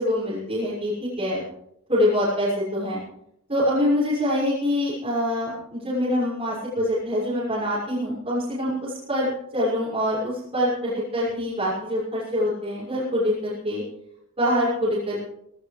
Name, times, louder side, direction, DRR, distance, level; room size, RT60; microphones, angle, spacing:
voice 1, 0.0-1.4 1.9-3.0 3.5-13.8 14.4-15.3, left 1 dB, 30° right, -9 dB, 6.1 m, -25 dB
18.5 x 18.0 x 3.4 m, 0.74 s
head